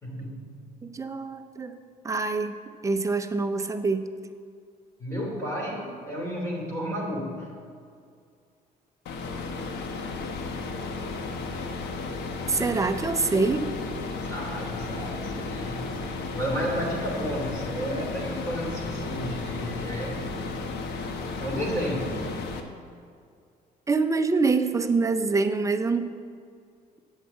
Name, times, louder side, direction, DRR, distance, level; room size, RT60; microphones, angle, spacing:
voice 1, 0.0-0.6 5.0-7.6 14.2-20.4 21.4-22.2, equal, 15° left, -4 dB, 2.9 m, -32 dB
voice 2, 0.9-1.8 2.0-2.6 2.8-4.1 12.5-13.7 23.9-26.1, right 4 dB, 20° right, 8 dB, 0.7 m, -25 dB
sound 1, 9.1-22.6, left 3 dB, 80° left, 1.1 m, -34 dB
8.4 x 7.4 x 8.4 m, 2.3 s
cardioid pair, 110°, 17 cm